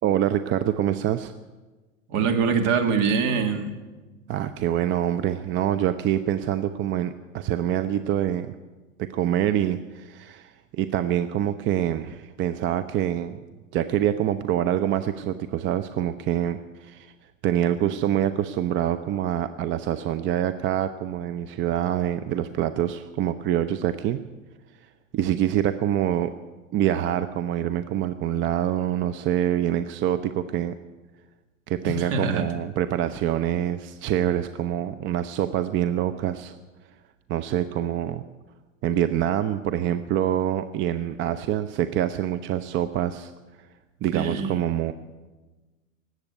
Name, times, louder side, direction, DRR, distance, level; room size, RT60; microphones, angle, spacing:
voice 1, 0.0-1.3 4.3-8.5 9.0-13.4 13.7-17.1 17.4-24.2 25.1-26.3 26.7-30.7 31.7-36.5 37.3-38.2 38.8-43.3 44.0-44.9, right 11 dB, 30° right, 10 dB, 0.6 m, -25 dB
voice 2, 2.1-3.7 31.8-32.5 44.1-44.6, right 5 dB, 50° right, 6 dB, 2.3 m, -24 dB
18.5 x 8.1 x 9.3 m, 1.2 s
figure-of-eight pair, 90°, 40 cm